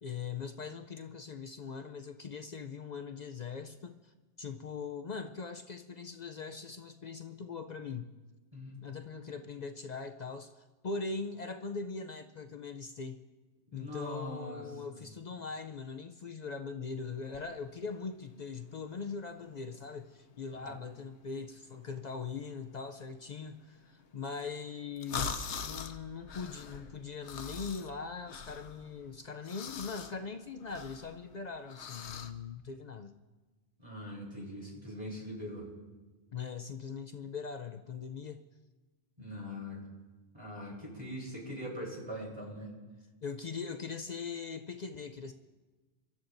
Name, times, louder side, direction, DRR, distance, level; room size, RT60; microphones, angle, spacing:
voice 1, 0.0-8.1 8.8-13.2 13.7-33.1 36.3-38.4 43.2-45.3, left 5 dB, 55° left, 7 dB, 0.5 m, -41 dB
voice 2, 8.5-8.9 13.7-15.1 20.5-20.8 33.8-35.7 39.2-39.8 40.3-42.7, equal, 25° right, -4 dB, 3.7 m, -42 dB
sound 1, 17.2-32.3, left 6 dB, 75° left, 1.0 m, -44 dB
25.5 x 13.0 x 2.6 m, 1.3 s
omnidirectional pair, 1.2 m